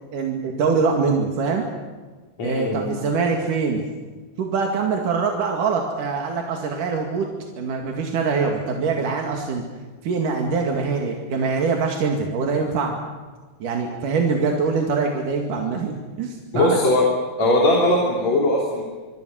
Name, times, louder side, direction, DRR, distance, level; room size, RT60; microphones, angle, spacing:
voice 1, 0.1-1.6 2.4-3.8 4.4-7.3 7.6-9.6 10.0-13.0 13.6-16.8, right 4 dB, 90° right, 1 dB, 3.7 m, -23 dB
voice 2, 2.4-2.9 16.5-17.0 17.4-18.8, left 1 dB, 60° left, -2 dB, 4.6 m, -19 dB
25.5 x 25.0 x 6.4 m, 1.3 s
omnidirectional pair, 3.6 m